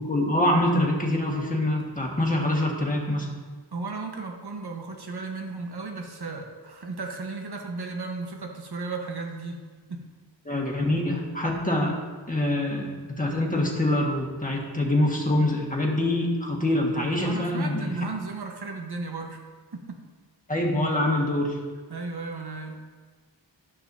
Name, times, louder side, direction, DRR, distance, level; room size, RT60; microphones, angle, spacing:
voice 1, 0.0-3.3 10.4-11.9 12.3-12.9 13.2-17.9 20.5-21.6, left 1 dB, 20° left, -2 dB, 1.6 m, -25 dB
voice 2, 3.7-9.6 9.9-10.0 17.2-20.0 21.9-22.8, right 3 dB, 60° right, 3 dB, 1.1 m, -35 dB
12.5 x 6.2 x 2.7 m, 1.5 s
wide cardioid pair, 65°, 45 cm